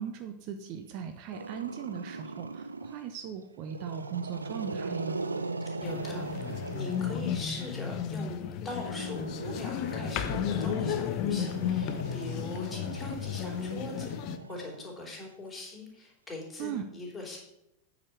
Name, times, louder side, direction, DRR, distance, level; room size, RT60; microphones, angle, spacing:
voice 1, 0.0-5.2 16.6-16.9, right 8 dB, 45° right, 7 dB, 0.7 m, -38 dB
Growling, 1.3-3.1 3.6-7.8 8.7-15.3, right 3 dB, 80° right, 0.4 m, -40 dB
sound 1, 5.8-14.4, left 8 dB, 40° left, 0.6 m, -33 dB
voice 2, 5.8-14.1 14.5-17.4, left 2 dB, 10° left, -3 dB, 3.2 m, -41 dB
8.5 x 5.0 x 5.9 m, 0.85 s
figure-of-eight pair, 90°, 0 cm